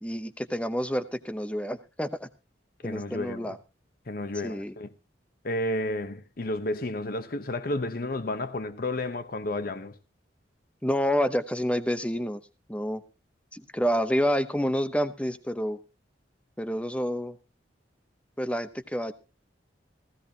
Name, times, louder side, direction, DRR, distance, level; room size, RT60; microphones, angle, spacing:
voice 1, 0.0-2.3 2.8-3.6 4.4-4.7 10.8-12.4 12.7-13.0 13.5-15.8 16.6-17.4 18.4-19.1, equal, 5° left, 0.8 m, -28 dB
voice 2, 2.8-3.6 4.1-4.9 5.4-10.0, left 1 dB, 55° left, 0.9 m, -31 dB
16.0 x 15.5 x 2.8 m
head